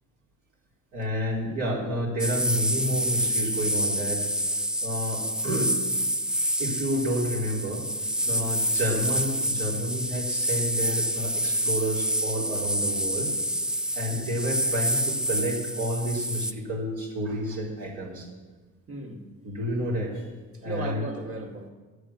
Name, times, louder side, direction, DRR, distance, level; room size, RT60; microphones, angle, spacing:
voice 1, 0.9-4.2 4.8-5.7 6.6-7.9 8.3-13.3 13.9-18.3 19.4-20.3 20.6-21.0, equal, 80° right, 4.0 m, -30 dB
sound 1, 2.2-16.5, equal, 5° right, 0.4 m, -28 dB
voice 2, 18.9-19.5 20.5-21.7, right 2 dB, 45° right, 2.2 m, -36 dB
13.0 x 8.1 x 7.1 m
cardioid pair, 90°, 30 cm